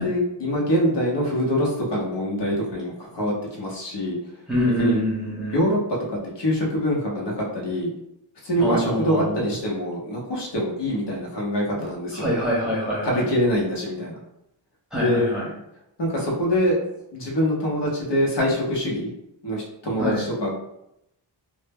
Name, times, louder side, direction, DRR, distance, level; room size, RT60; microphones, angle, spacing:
voice 1, 0.0-4.2 4.8-5.0 5.5-5.8 6.1-7.9 8.4-12.3 13.0-14.1 14.9-15.3 16.0-16.8 17.1-19.1 19.4-20.5, equal, 65° left, -3 dB, 0.7 m, -24 dB
voice 2, 4.5-5.6 8.6-9.4 12.1-13.2 14.9-15.4 20.0-20.3, equal, ahead, -7 dB, 0.8 m, -25 dB
2.0 x 2.0 x 3.3 m, 0.82 s
wide cardioid pair, 145°, 45 cm